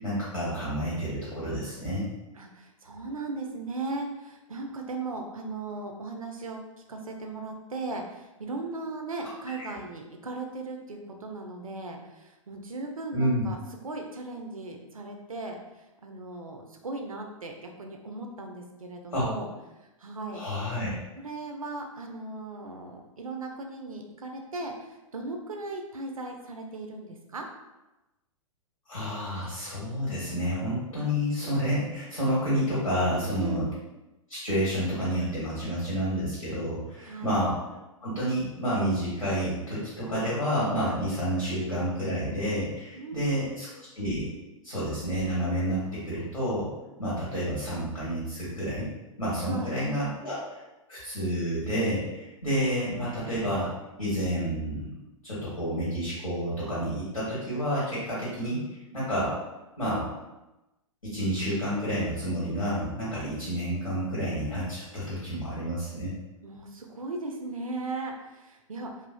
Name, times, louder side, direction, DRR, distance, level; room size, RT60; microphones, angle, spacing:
voice 1, 0.0-2.1 9.6-9.7 13.1-13.5 19.1-19.3 20.3-20.9 28.9-33.7 34.3-37.6 38.0-44.3 44.6-46.7 47.0-48.9 49.2-50.6 50.9-53.7 54.0-59.3 59.8-60.1 61.0-66.1, equal, 90° left, -9 dB, 1.1 m, -29 dB
voice 2, 2.4-6.6 6.9-13.6 13.8-15.6 16.0-19.5 20.0-20.4 21.2-27.5 33.3-33.8 37.0-37.3 43.0-43.5 49.4-49.7 66.4-68.9, right 3 dB, 80° right, 3 dB, 0.5 m, -37 dB
3.1 x 2.4 x 2.3 m, 1.0 s
figure-of-eight pair, 105°, 18 cm